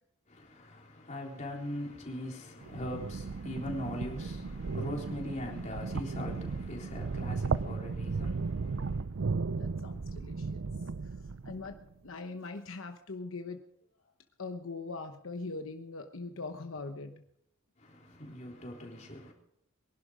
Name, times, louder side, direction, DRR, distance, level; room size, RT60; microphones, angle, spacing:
voice 1, 0.3-9.0 17.8-19.3, left 1 dB, 35° left, 3.6 m, -41 dB
sound 1, 2.6-11.8, right 4 dB, 75° right, 0.6 m, -35 dB
voice 2, 9.6-10.6 11.0-11.8 12.0-13.6 14.4-17.2, left 3 dB, 75° left, 1.0 m, -41 dB
22.5 x 11.5 x 5.1 m
head